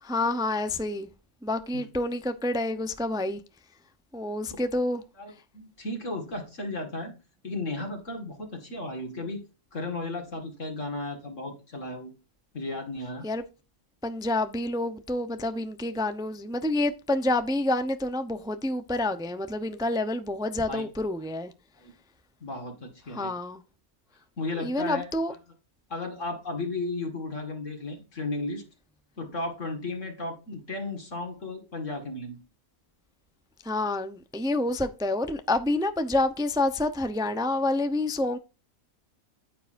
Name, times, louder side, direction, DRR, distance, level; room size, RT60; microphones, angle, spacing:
voice 1, 0.0-1.1 1.4-3.4 4.1-5.0 13.2-13.4 14.0-21.5 23.1-23.6 24.6-25.3 33.6-38.4, left 2 dB, 5° right, 0.5 m, -28 dB
voice 2, 5.2-7.1 7.4-9.4 9.7-12.1 12.5-13.3 20.7-20.8 21.8-21.9 22.4-23.3 24.4-25.1 25.9-28.6 29.2-32.4, left 2 dB, 60° left, 2.2 m, -34 dB
9.6 x 9.5 x 2.6 m
omnidirectional pair, 1.5 m